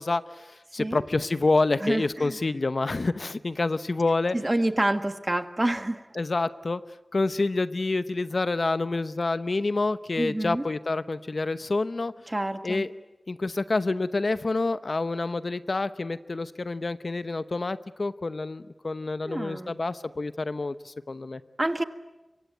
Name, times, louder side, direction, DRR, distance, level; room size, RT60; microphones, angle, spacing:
voice 1, 0.0-4.4 6.2-6.8 7.1-12.1 12.6-12.9 13.3-21.4, left 3 dB, 65° left, 13 dB, 0.9 m, -28 dB
voice 2, 1.8-2.4 4.3-6.0 10.2-10.7 12.3-12.9 19.2-19.7 21.6-21.8, right 1 dB, 25° right, 10 dB, 1.5 m, -27 dB
25.5 x 23.5 x 9.3 m, 1.0 s
wide cardioid pair, 70°, 0 cm